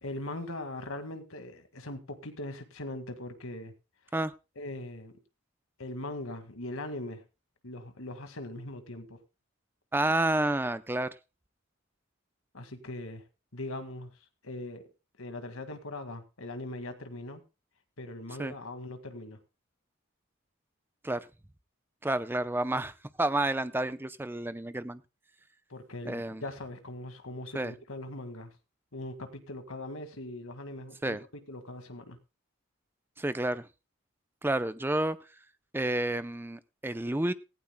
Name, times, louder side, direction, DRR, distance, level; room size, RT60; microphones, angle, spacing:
voice 1, 0.0-3.7 4.6-5.1 5.8-7.2 7.6-9.2 12.5-13.2 13.5-14.1 14.4-14.9 15.2-17.4 18.0-19.4 25.7-28.5 28.9-31.2 31.5-32.2, left 1 dB, 80° left, 2.0 m, -40 dB
voice 2, 9.9-11.1 18.4-18.5 21.0-21.3 22.0-22.9 23.2-25.0 26.1-26.4 27.5-27.7 31.0-31.2 33.2-33.7 34.4-35.2 35.7-37.3, right 1 dB, 10° right, 0.5 m, -30 dB
17.5 x 16.0 x 2.2 m
head